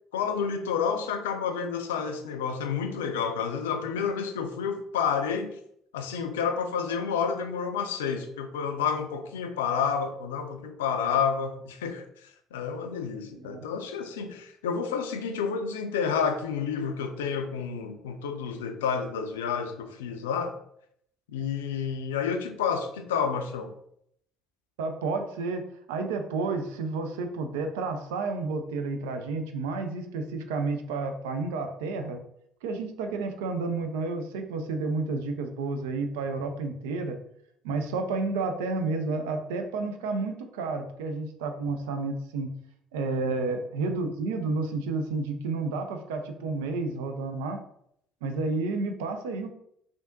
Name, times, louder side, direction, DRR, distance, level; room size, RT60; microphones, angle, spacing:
voice 1, 0.1-5.5 5.9-12.0 12.5-20.5 21.3-23.7 43.2-43.6, left 6 dB, 70° left, 7 dB, 0.3 m, -30 dB
voice 2, 24.8-32.2 32.6-37.2 37.6-42.5 42.9-47.6 48.2-49.5, right 3 dB, 70° right, 6 dB, 0.4 m, -31 dB
3.4 x 2.5 x 2.6 m, 0.71 s
figure-of-eight pair, 50°, 0 cm